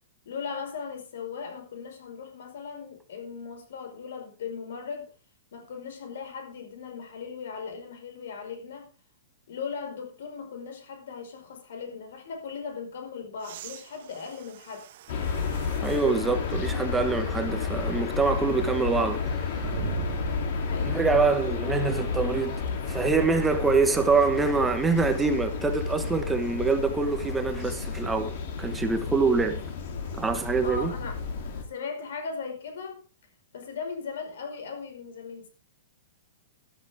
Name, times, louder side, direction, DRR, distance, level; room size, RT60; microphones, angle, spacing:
voice 1, 0.2-5.1 5.5-8.9 9.5-14.8 20.5-21.1 30.6-31.2 31.7-33.0 33.5-35.5, left 5 dB, 60° left, 4.9 m, -38 dB
sound 1, 13.4-16.1 16.8-16.9 19.6-20.8 22.7-22.8, right 11 dB, 40° right, 1.1 m, -39 dB
sound 2, 15.1-31.6, left 5 dB, 40° left, 3.0 m, -31 dB
voice 2, 15.8-19.7 20.8-22.5 22.9-29.6 30.2-30.9, right 4 dB, 5° right, 1.1 m, -25 dB
13.0 x 12.0 x 3.6 m
hypercardioid pair, 175°, 0 cm